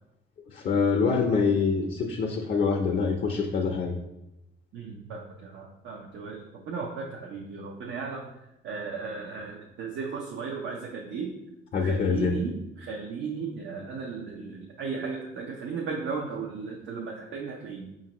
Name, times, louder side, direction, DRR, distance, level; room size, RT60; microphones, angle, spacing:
voice 1, 0.5-4.0 11.7-12.4, left 5 dB, 50° left, 2 dB, 0.5 m, -25 dB
voice 2, 4.7-8.3 8.6-11.3 11.7-17.9, right 5 dB, 75° right, -1 dB, 0.6 m, -35 dB
5.1 x 2.5 x 2.9 m, 0.89 s
cardioid pair, 90°, 20 cm